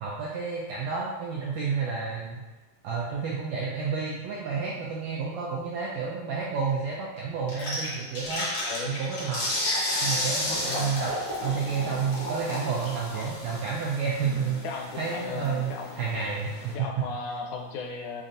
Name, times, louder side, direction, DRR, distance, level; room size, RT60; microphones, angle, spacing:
voice 1, 0.0-2.4 2.8-8.5 8.9-9.4 10.0-11.1 11.4-14.6 15.0-17.0, right 5 dB, 85° right, -4 dB, 1.5 m, -30 dB
sound 1, 7.5-16.7, left 1 dB, 65° left, 2.1 m, -33 dB
voice 2, 10.5-11.0 14.2-16.0 16.7-18.2, left 4 dB, 85° left, 1 dB, 2.1 m, -36 dB
5.3 x 2.5 x 2.5 m, 1.2 s
omnidirectional pair, 3.5 m